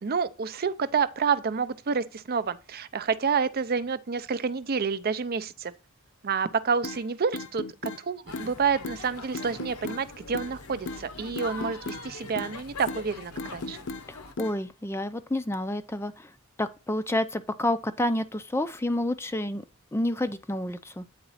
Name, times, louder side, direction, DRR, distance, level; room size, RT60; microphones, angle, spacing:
voice 1, 0.0-5.7 6.2-13.8, right 5 dB, 45° right, 0.5 m, -29 dB
sound 1, 6.8-7.0 7.3-8.0 8.3-8.5 8.8-9.0 9.3-10.0 10.3-10.5 10.9-11.0 11.4-12.1 12.4-12.6 12.9-13.1 13.4-14.0 14.4-14.6, left 3 dB, 55° left, 0.7 m, -35 dB
sound 2, 8.3-14.3, left 3 dB, 75° left, 1.0 m, -43 dB
voice 2, 14.1-16.3 16.6-19.6 19.9-21.0, left 1 dB, 10° left, 0.4 m, -29 dB
8.8 x 4.0 x 4.0 m
head